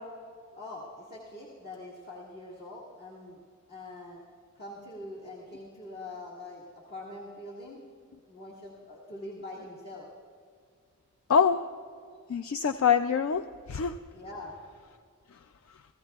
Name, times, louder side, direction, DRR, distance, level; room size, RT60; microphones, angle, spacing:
voice 1, 0.6-3.4 3.7-4.2 4.6-7.8 8.2-10.1 14.1-14.6, left 2 dB, 50° left, -6 dB, 1.9 m, -43 dB
voice 2, 11.3-11.6 12.3-14.0 15.3-15.4, left 7 dB, 65° left, 9 dB, 0.4 m, -25 dB
29.0 x 16.0 x 2.4 m, 2.2 s
head